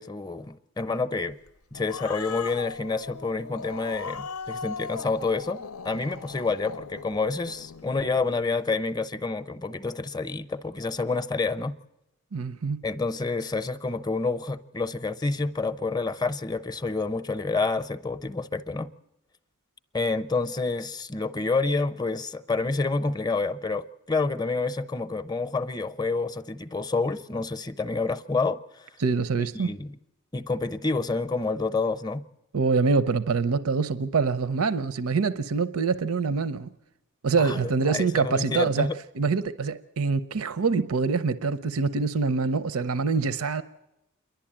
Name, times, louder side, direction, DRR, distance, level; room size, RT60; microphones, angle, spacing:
voice 1, 0.0-1.4 1.7-11.7 12.8-18.9 19.9-28.6 29.4-30.0 30.3-32.2 37.4-39.0, left 3 dB, 20° left, 0.6 m, -28 dB
Growling, 1.5-8.3, left 5 dB, 85° left, 0.6 m, -39 dB
voice 2, 12.3-12.8 29.0-29.7 32.5-36.7 37.2-38.9 39.1-43.6, right 4 dB, 80° right, 0.6 m, -25 dB
28.0 x 11.5 x 8.7 m
head